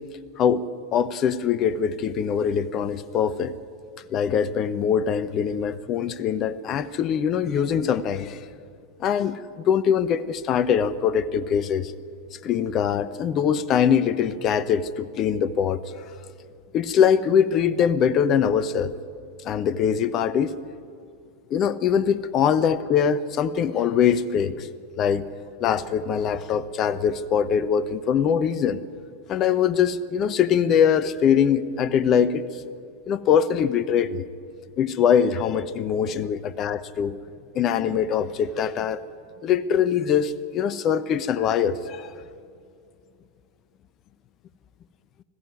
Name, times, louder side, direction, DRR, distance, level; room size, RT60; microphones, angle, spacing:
voice 1, 0.4-3.5 4.1-8.5 9.0-11.9 12.4-15.8 16.7-18.9 19.4-20.5 21.5-24.7 25.0-25.3 25.6-28.8 29.3-32.6 33.1-34.3 34.8-37.2 37.5-39.0 39.4-42.1, left 8 dB, 40° left, 16 dB, 0.9 m, -22 dB
20.5 x 14.5 x 9.5 m, 2.5 s
figure-of-eight pair, 90°, 0 cm